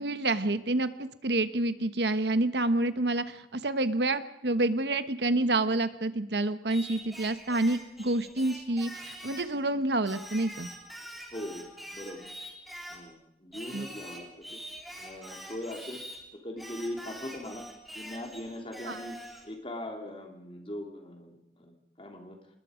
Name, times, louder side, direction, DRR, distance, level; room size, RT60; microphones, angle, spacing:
voice 1, 0.0-10.7 13.7-13.9 18.9-19.0, right 2 dB, 75° right, 12 dB, 1.2 m, -28 dB
Singing, 6.7-9.5 10.1-13.1 13.5-16.2 16.6-19.5, equal, ahead, 3.2 m, -45 dB
voice 2, 11.3-12.3 12.9-14.6 15.0-16.0 16.4-17.6 17.9-19.2 19.4-22.4, left 1 dB, 30° left, 3 dB, 3.0 m, -40 dB
26.0 x 20.5 x 5.1 m, 0.90 s
head